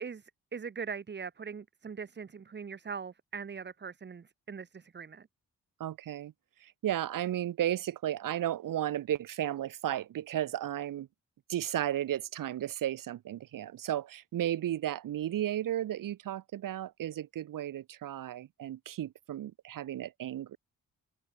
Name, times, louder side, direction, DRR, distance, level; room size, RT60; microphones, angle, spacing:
voice 1, 0.0-5.3, right 6 dB, 35° right, 0.8 m, -41 dB
voice 2, 5.8-6.3 6.6-11.1 11.5-20.6, right 12 dB, 75° right, 0.9 m, -34 dB
cardioid pair, 75°, 33 cm